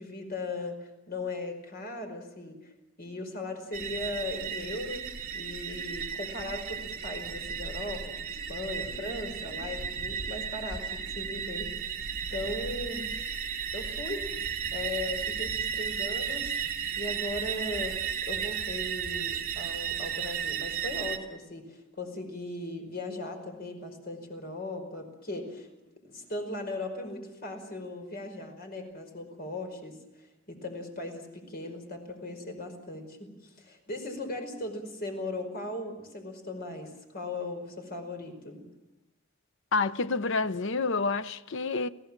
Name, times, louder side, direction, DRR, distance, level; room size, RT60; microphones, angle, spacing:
voice 1, 0.0-2.7 3.0-5.0 5.3-10.8 11.1-12.0 12.3-13.0 13.7-14.3 14.7-16.5 17.0-18.0 18.3-25.7 26.1-38.6, left 2 dB, 50° left, 5.0 m, -38 dB
sound 1, 3.7-21.2, right 7 dB, 45° right, 2.9 m, -34 dB
voice 2, 39.7-41.9, left 3 dB, 65° left, 0.8 m, -28 dB
30.0 x 17.0 x 7.5 m
head